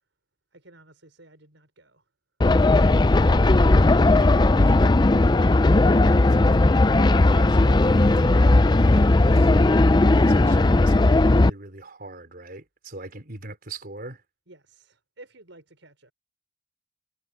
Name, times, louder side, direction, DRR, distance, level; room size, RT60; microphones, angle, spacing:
voice 1, 0.5-2.0 14.5-16.1, right 2 dB, 85° right, 5.4 m, -51 dB
sound 1, 2.4-11.5, left 2 dB, 25° left, 0.5 m, -17 dB
voice 2, 3.2-5.6 6.4-9.5 10.3-14.2, right 2 dB, 55° right, 4.2 m, -42 dB
head